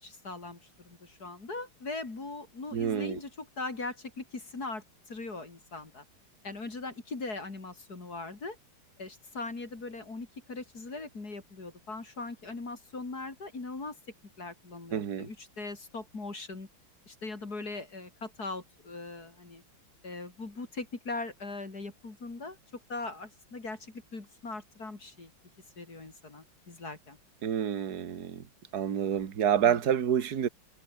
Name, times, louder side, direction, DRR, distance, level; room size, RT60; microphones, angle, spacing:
voice 1, 0.0-6.0 6.4-8.6 9.0-14.0 14.4-16.7 17.1-19.6 20.0-22.6 22.9-25.3 25.8-27.2 29.6-29.8, left 3 dB, 45° left, 4.2 m, -40 dB
voice 2, 2.7-3.2 14.9-15.3 27.4-28.5 28.7-30.5, right 8 dB, 50° right, 2.0 m, -28 dB
omnidirectional pair, 2.2 m